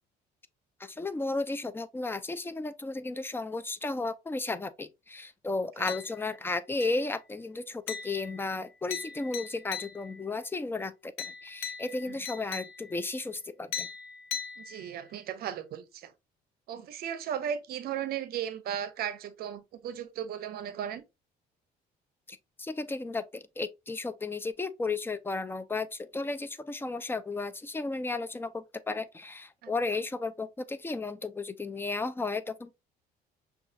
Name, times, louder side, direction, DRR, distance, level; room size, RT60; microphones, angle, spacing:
voice 1, 0.8-13.9 22.3-32.7, left 3 dB, 15° left, 0.4 m, -34 dB
sound 1, 5.9-6.4 6.8-7.2 7.9-10.3 11.2-13.1 13.7-15.1, left 8 dB, 90° left, 0.6 m, -40 dB
voice 2, 14.6-16.1 16.7-21.0 29.6-29.7, right 9 dB, 65° right, 0.6 m, -36 dB
5.9 x 2.3 x 2.6 m
cardioid pair, 110°, 17 cm